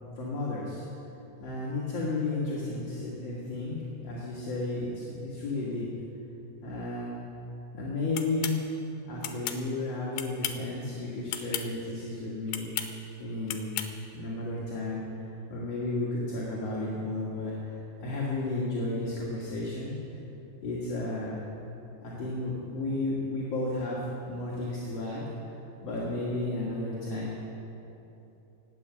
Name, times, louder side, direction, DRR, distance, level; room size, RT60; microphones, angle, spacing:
voice 1, 0.2-0.9 1.4-5.9 6.6-7.1 7.7-8.7 9.1-12.7 13.2-13.9 14.1-20.0 20.6-21.4 22.0-24.0 24.3-27.3, left 2 dB, 45° left, -6 dB, 2.5 m, -33 dB
sound 1, 8.2-8.6 9.2-9.6 10.2-10.7 11.3-11.7 12.5-12.9 13.5-13.9, left 11 dB, 80° left, 3.0 m, -34 dB
18.5 x 8.6 x 8.3 m, 2.9 s
omnidirectional pair, 5.1 m